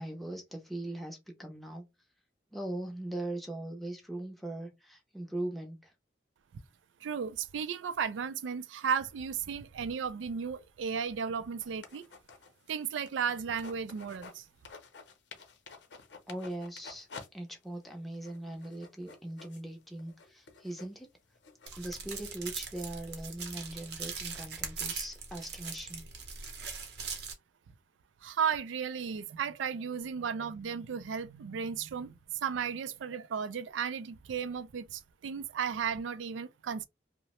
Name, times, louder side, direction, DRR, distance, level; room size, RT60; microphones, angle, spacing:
voice 1, 0.0-1.8 2.5-5.9 16.3-17.1 17.3-21.1 21.7-26.0, right 1 dB, ahead, 0.5 m, -40 dB
voice 2, 7.0-12.0 12.7-14.5 28.2-36.9, right 7 dB, 85° right, 0.3 m, -34 dB
sound 1, 11.6-14.4 14.6-17.3 17.6-17.7 18.1-21.7, left 4 dB, 70° left, 0.6 m, -51 dB
sound 2, 21.7-27.3, right 5 dB, 60° right, 0.7 m, -41 dB
2.8 x 2.0 x 2.9 m
head